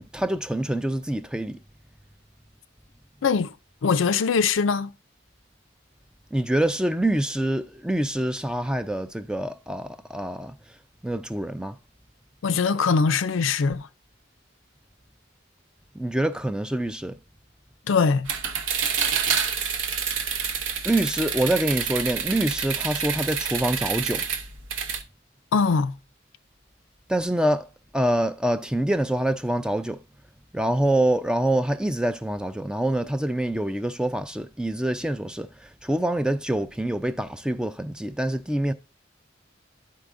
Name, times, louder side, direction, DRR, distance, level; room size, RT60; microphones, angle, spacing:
voice 1, 0.0-1.6 6.3-10.5 11.0-11.8 16.0-17.2 20.8-24.2 27.1-27.7 27.9-30.0 30.5-35.5 35.8-38.7, right 1 dB, 5° right, 0.4 m, -25 dB
voice 2, 3.2-3.5 3.8-4.9 12.4-13.9 17.9-18.3 25.5-25.9, left 5 dB, 90° left, 0.5 m, -22 dB
sound 1, 18.3-25.0, right 6 dB, 80° right, 0.8 m, -28 dB
12.0 x 4.7 x 2.5 m
head